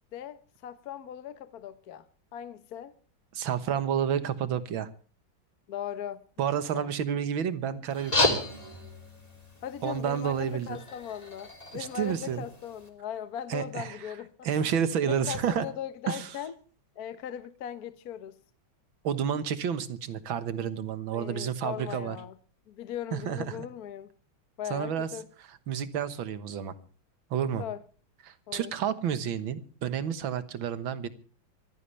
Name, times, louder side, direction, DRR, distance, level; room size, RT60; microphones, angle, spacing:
voice 1, 0.1-2.0 2.3-2.9 5.7-6.2 6.7-6.9 9.6-14.7 15.1-16.5 17.0-18.3 21.1-22.3 22.7-24.1 24.6-25.3 27.6-27.8 28.5-28.7, left 9 dB, 55° left, 1.2 m, -38 dB
voice 2, 3.3-4.9 6.4-8.4 9.8-10.8 11.7-12.5 13.5-14.0 14.4-15.7 16.1-16.3 19.0-22.2 23.1-23.7 24.7-25.1 25.7-26.7 27.3-27.6 28.2-31.1, right 8 dB, 80° right, 2.0 m, -30 dB
sound 1, 7.9-12.9, left 1 dB, 20° left, 3.1 m, -33 dB
24.0 x 15.5 x 3.3 m
omnidirectional pair, 2.2 m